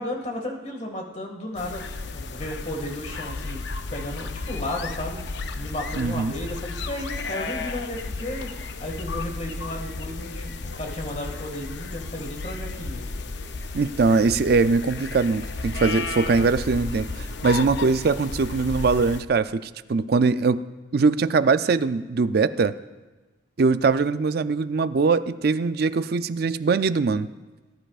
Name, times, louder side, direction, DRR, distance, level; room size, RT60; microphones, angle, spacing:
voice 1, 0.0-1.8 2.1-3.6 3.9-13.1, left 1 dB, 35° left, 1 dB, 1.9 m, -34 dB
sound 1, 1.6-19.2, left 3 dB, 60° left, 0.6 m, -33 dB
voice 2, 6.0-6.3 13.7-20.6 20.9-22.7 23.6-27.3, right 4 dB, 50° right, 13 dB, 0.4 m, -22 dB
19.5 x 11.5 x 2.4 m, 1.2 s
head